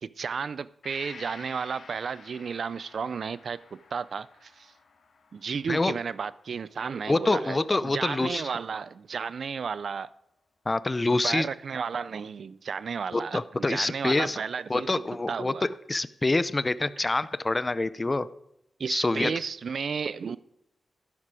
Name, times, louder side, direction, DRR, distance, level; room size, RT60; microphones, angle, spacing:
voice 1, 0.0-4.7 5.3-10.1 11.2-14.9 15.3-15.6 17.0-17.1 18.8-20.4, right 6 dB, 65° right, 0.5 m, -33 dB
Gong, 0.8-8.5 8.9-9.0, left 5 dB, 70° left, 1.9 m, -51 dB
voice 2, 7.1-8.4 10.7-11.5 13.1-14.4 14.7-18.3 18.9-19.3, left 2 dB, 25° left, 0.6 m, -26 dB
12.5 x 11.0 x 4.9 m
wide cardioid pair, 100°, 0 cm